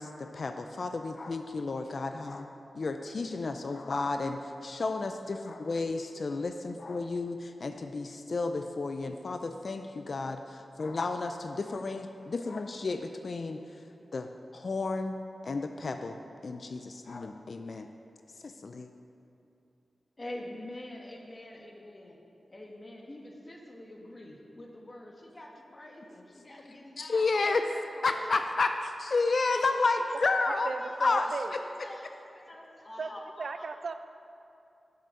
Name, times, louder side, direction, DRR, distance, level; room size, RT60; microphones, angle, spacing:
voice 1, 0.0-13.6 14.1-15.2 15.4-16.2 16.4-17.9 18.4-18.9 27.0-27.7 28.0-30.7 31.0-31.6, left 3 dB, 60° left, 7 dB, 0.4 m, -32 dB
voice 2, 20.2-22.2 22.5-27.3 27.5-28.3 30.1-30.2 30.8-30.9 31.6-32.1 32.3-33.7, left 1 dB, 35° left, 0 dB, 1.4 m, -46 dB
voice 3, 30.5-31.5 33.0-33.1 33.4-33.9, right 4 dB, 70° right, 9 dB, 0.4 m, -36 dB
8.2 x 6.7 x 6.4 m, 2.7 s
wide cardioid pair, 80°, 0 cm